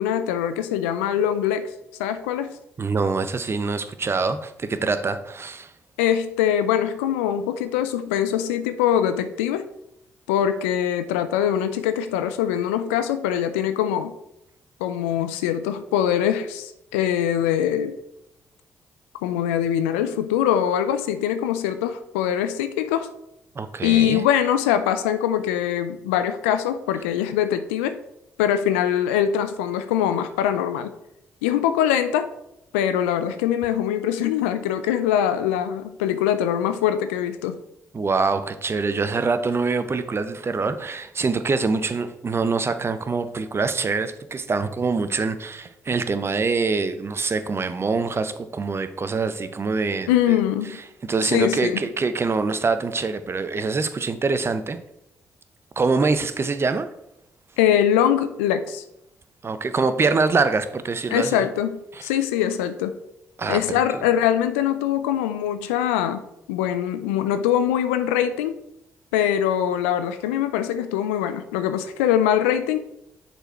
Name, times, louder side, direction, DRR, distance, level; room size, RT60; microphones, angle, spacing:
voice 1, 0.0-1.7 2.0-2.6 6.0-9.6 10.3-14.1 14.8-18.0 19.2-23.1 23.8-28.0 28.4-30.9 31.4-32.3 32.7-37.6 50.1-50.8 51.2-51.8 57.6-58.8 61.1-62.9 63.5-68.6 69.1-72.8, left 10 dB, 85° left, 10 dB, 0.4 m, -23 dB
voice 2, 2.8-5.7 23.6-24.2 37.9-50.1 51.1-54.8 55.8-56.9 59.4-61.4 63.4-63.6, right 4 dB, 35° right, 11 dB, 0.7 m, -24 dB
6.7 x 4.5 x 4.5 m, 0.81 s
hypercardioid pair, 45°, 7 cm